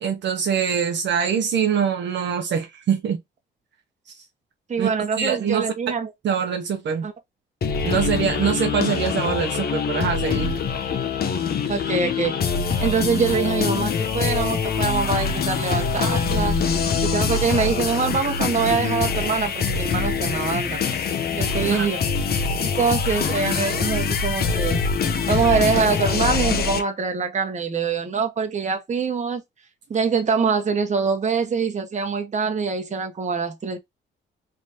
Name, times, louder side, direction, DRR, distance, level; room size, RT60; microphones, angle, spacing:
voice 1, 0.0-3.2 4.8-4.9 5.2-5.7 6.2-7.1 7.8-10.6 21.6-21.9, right 7 dB, 65° right, 0.9 m, -24 dB
voice 2, 4.7-6.1 7.0-7.1 11.7-12.4 12.8-16.6 17.0-20.8 21.3-22.0 22.6-24.8 25.3-29.4 29.9-33.8, right 5 dB, 35° right, 1.3 m, -24 dB
sound 1, 7.6-26.8, left 5 dB, 50° left, 0.9 m, -24 dB
3.5 x 3.0 x 2.9 m
cardioid pair, 90°, 20 cm